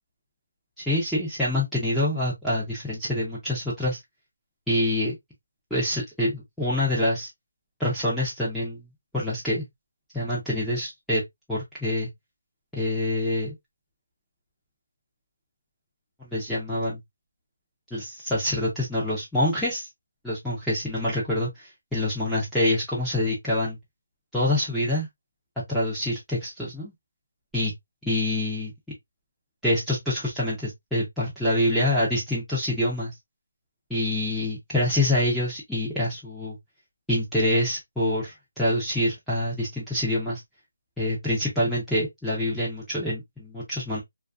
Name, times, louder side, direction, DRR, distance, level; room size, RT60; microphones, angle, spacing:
voice 1, 0.8-4.0 4.7-5.1 5.7-7.3 7.8-8.9 9.1-9.7 10.1-11.2 11.5-12.1 12.7-13.5 16.2-17.0 17.9-19.9 20.2-23.8 24.3-25.1 25.7-26.9 27.5-27.7 28.0-28.7 29.6-33.1 33.9-36.6 37.1-40.4 41.0-44.0, left 1 dB, ahead, 0.4 m, -26 dB
2.5 x 2.3 x 2.3 m
hypercardioid pair, 180°, 0 cm